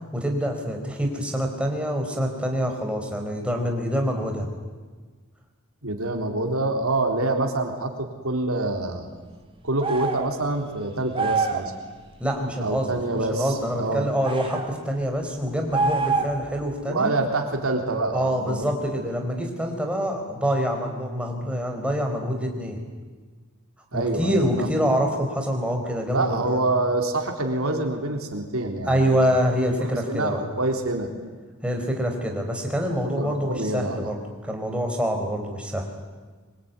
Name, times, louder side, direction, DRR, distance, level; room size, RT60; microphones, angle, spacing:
voice 1, 0.1-4.5 12.2-12.9 13.3-17.1 18.1-22.8 23.9-26.6 28.8-30.4 31.6-35.9, equal, 5° right, 2 dB, 4.6 m, -26 dB
voice 2, 5.8-9.1 9.6-11.7 12.6-14.1 16.9-18.6 23.9-24.7 26.1-29.4 29.9-31.1 32.9-34.2, right 2 dB, 70° right, 3 dB, 3.7 m, -26 dB
sound 1, 9.8-10.3 11.1-11.7 14.2-14.7 15.7-16.5, right 4 dB, 25° right, 2.7 m, -25 dB
24.5 x 23.0 x 9.6 m, 1.4 s
head